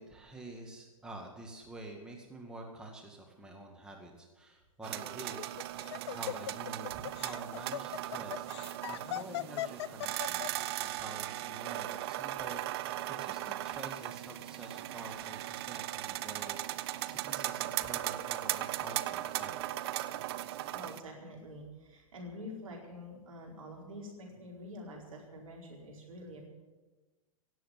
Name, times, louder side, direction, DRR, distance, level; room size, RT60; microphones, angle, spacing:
voice 1, 0.0-19.6, right 2 dB, 5° right, 0 dB, 1.9 m, -48 dB
sound 1, 4.8-21.0, right 15 dB, 45° right, 0.7 m, -38 dB
Laughter, 5.2-10.7, left 13 dB, 50° left, 0.4 m, -39 dB
voice 2, 20.7-26.5, left 1 dB, 70° right, -1 dB, 4.7 m, -47 dB
17.0 x 7.7 x 9.1 m, 1.2 s
figure-of-eight pair, 105°, 18 cm